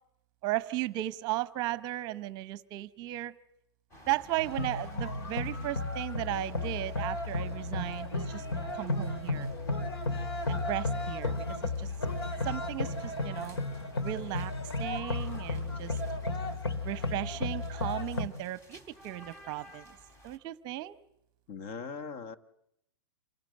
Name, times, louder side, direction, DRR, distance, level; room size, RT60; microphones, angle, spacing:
voice 1, 0.4-3.3 4.1-8.5 8.7-9.5 10.5-11.9 12.4-13.6 14.0-14.5 14.8-16.0 16.8-19.9 20.2-21.0, right 16 dB, 35° right, 16 dB, 0.9 m, -36 dB
sound 1, 3.9-20.4, equal, 25° left, 3.5 m, -55 dB
sound 2, 4.4-18.3, left 2 dB, 85° left, 2.4 m, -34 dB
sound 3, 4.6-12.0 12.5-12.6, right 2 dB, 5° left, 3.9 m, -57 dB
voice 2, 21.5-22.4, left 5 dB, 45° left, 11 dB, 1.5 m, -40 dB
27.0 x 17.0 x 7.7 m, 0.79 s
hypercardioid pair, 130°, 13 cm